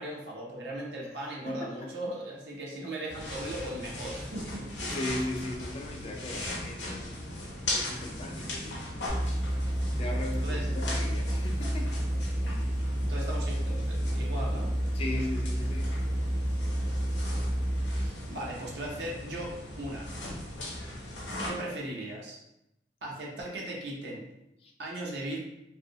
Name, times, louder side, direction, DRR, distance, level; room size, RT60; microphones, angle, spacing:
voice 1, 0.0-4.7 10.4-10.7 13.0-14.7 18.0-20.4 21.4-22.4 23.0-24.3 24.8-25.4, right 1 dB, 70° right, -3 dB, 0.6 m, -38 dB
voice 2, 1.5-2.0 4.9-8.9 9.6-9.7 10.0-12.0 12.4-12.7 14.9-16.0 24.6-24.7, left 1 dB, 35° left, 1 dB, 0.3 m, -38 dB
sound 1, 3.1-21.5, left 1 dB, 85° left, 0.7 m, -39 dB
sound 2, 9.1-18.2, equal, 25° right, 0.6 m, -30 dB
2.6 x 2.1 x 2.7 m, 0.85 s
head